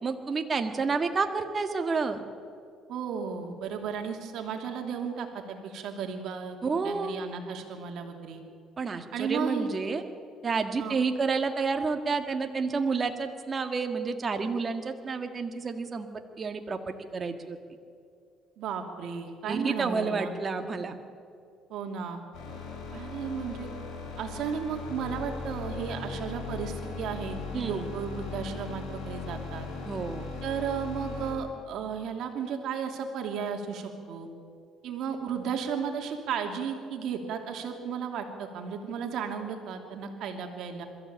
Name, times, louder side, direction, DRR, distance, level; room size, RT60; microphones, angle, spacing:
voice 1, 0.0-2.2 6.6-7.1 8.8-10.0 10.4-16.1 16.4-17.6 19.5-21.0 27.5-27.9 29.9-30.3, right 4 dB, 30° right, 6 dB, 1.8 m, -30 dB
voice 2, 2.9-6.6 6.8-8.4 9.1-9.7 10.8-11.0 18.6-20.3 21.7-22.2 22.9-23.7 24.2-29.7 30.4-34.3 34.8-40.9, right 6 dB, 65° right, 4 dB, 2.8 m, -34 dB
sound 1, 22.3-31.3, left 4 dB, 70° left, 5.4 m, -38 dB
22.0 x 14.0 x 8.8 m, 2.3 s
cardioid pair, 105°, 0 cm